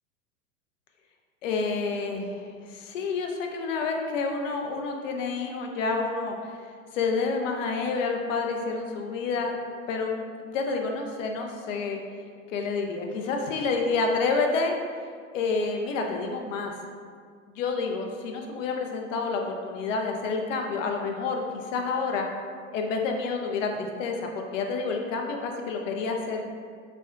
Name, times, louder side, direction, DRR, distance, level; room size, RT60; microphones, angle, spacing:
voice 1, 1.4-6.3 6.9-9.5 9.9-12.0 12.5-14.8 15.3-16.7 17.6-22.3 22.7-26.5, left 4 dB, 70° left, 3 dB, 0.6 m, -29 dB
4.2 x 2.1 x 2.4 m, 2.1 s
hypercardioid pair, 100°, 40 cm